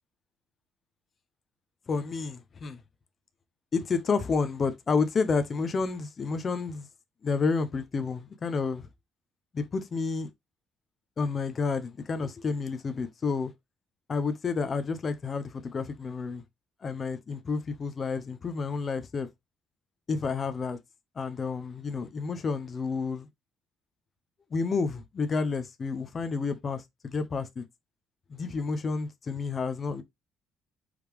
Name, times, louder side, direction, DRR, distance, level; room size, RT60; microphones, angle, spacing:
voice 1, 1.9-2.8 3.7-6.9 7.2-8.9 9.5-10.3 11.2-13.5 14.1-16.4 16.8-19.3 20.1-20.8 21.2-23.3 24.5-27.6 28.3-30.0, left 4 dB, 25° left, 0.5 m, -30 dB
4.8 x 3.3 x 3.3 m
cardioid pair, 165°, 0 cm